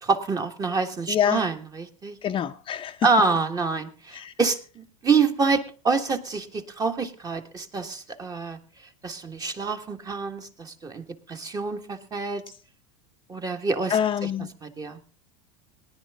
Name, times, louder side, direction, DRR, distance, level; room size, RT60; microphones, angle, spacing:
voice 1, 0.0-2.2 3.0-8.6 9.0-12.4 13.3-13.9 14.6-15.0, right 4 dB, 20° right, 1.4 m, -26 dB
voice 2, 1.1-1.5 2.2-3.1 4.1-4.3 13.9-14.5, left 9 dB, 30° left, 0.6 m, -26 dB
18.5 x 10.5 x 3.5 m
hypercardioid pair, 100°, 17 cm